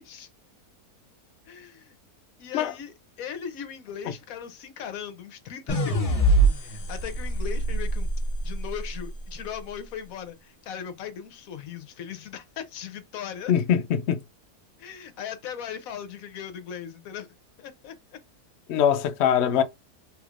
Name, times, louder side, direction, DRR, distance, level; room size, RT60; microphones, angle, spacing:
voice 1, 1.5-2.0 2.4-8.1 8.4-13.5 14.8-17.3 17.6-18.0, left 8 dB, 65° left, 1.0 m, -38 dB
sound 1, 5.7-8.9, right 2 dB, 30° left, 0.6 m, -24 dB
voice 2, 13.5-14.2 18.7-19.6, left 9 dB, 85° left, 0.5 m, -22 dB
3.4 x 3.2 x 2.4 m
omnidirectional pair, 1.7 m